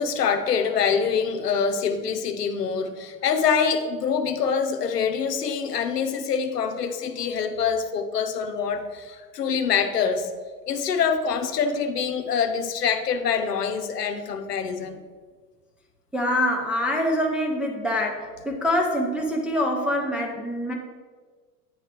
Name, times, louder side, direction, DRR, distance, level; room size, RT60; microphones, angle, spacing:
voice 1, 0.0-10.3 10.7-15.0, left 6 dB, 90° left, 7 dB, 0.7 m, -25 dB
voice 2, 16.1-20.7, left 1 dB, 5° right, -1 dB, 0.3 m, -25 dB
9.3 x 3.2 x 5.0 m, 1.5 s
hypercardioid pair, 90°, 47 cm